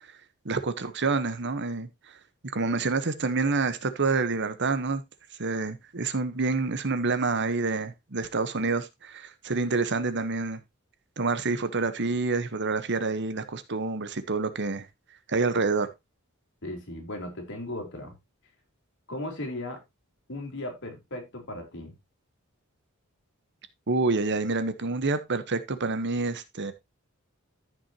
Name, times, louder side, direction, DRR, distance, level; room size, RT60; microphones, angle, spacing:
voice 1, 0.4-1.9 2.5-5.0 5.4-10.6 11.2-14.9 15.3-15.9 23.9-26.7, right 3 dB, 55° right, 1.2 m, -27 dB
voice 2, 16.6-18.2 19.1-19.8 20.3-22.0, left 1 dB, 60° left, 3.9 m, -36 dB
14.0 x 6.0 x 2.9 m
head